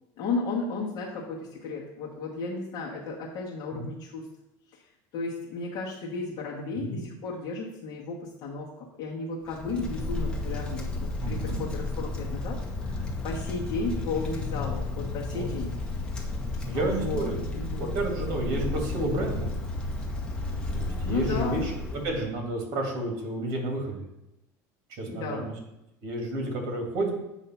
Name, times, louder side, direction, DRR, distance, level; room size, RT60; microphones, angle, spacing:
voice 1, 0.2-4.3 5.1-15.8 16.7-17.8 21.0-21.7 25.1-25.5, left 3 dB, 50° left, -4 dB, 1.2 m, -34 dB
Wind, 9.4-22.3, left 2 dB, 10° left, 1.2 m, -32 dB
voice 2, 11.2-11.6 15.3-15.6 16.6-17.4 17.7-19.5 20.7-24.0 24.9-25.4 26.0-27.1, right 2 dB, 55° right, 1 dB, 2.1 m, -31 dB
8.1 x 2.8 x 5.6 m, 0.89 s
supercardioid pair, 125°, 9 cm